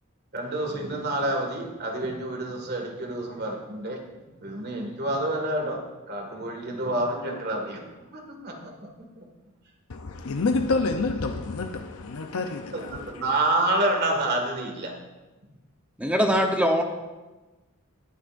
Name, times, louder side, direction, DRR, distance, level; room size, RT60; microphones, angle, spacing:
voice 1, 0.3-4.0 4.4-5.8 6.1-7.8 8.1-8.9 9.2-9.3 12.7-14.9, right 1 dB, 50° right, 1.9 m, -28 dB
voice 2, 9.9-13.3, left 3 dB, 90° left, 0.7 m, -28 dB
voice 3, 16.0-16.8, equal, 5° right, 0.9 m, -22 dB
20.5 x 8.2 x 2.6 m
head